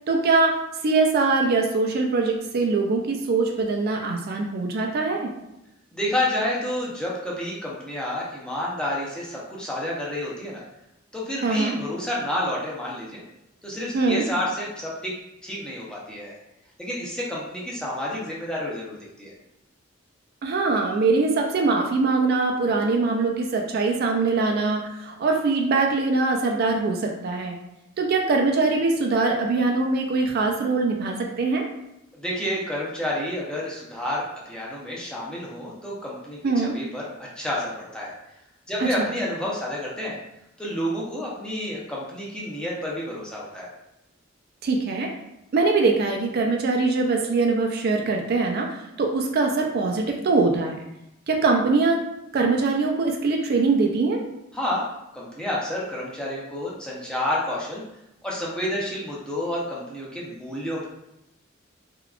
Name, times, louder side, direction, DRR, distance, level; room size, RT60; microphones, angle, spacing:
voice 1, 0.1-0.6 0.8-5.3 11.4-11.8 13.9-14.2 20.4-27.5 28.0-31.7 36.4-36.8 39.0-39.1 44.6-45.1 45.5-50.8 51.3-52.0 52.3-54.2, right 3 dB, 50° right, 2 dB, 0.3 m, -22 dB
voice 2, 5.9-10.6 11.1-13.2 13.6-15.1 15.4-16.3 16.8-19.3 32.1-37.0 37.4-38.1 38.7-40.1 40.6-43.7 54.5-54.8 55.1-57.8 58.2-60.9, left 1 dB, 5° left, -5 dB, 0.6 m, -29 dB
3.5 x 2.3 x 2.3 m, 0.87 s
head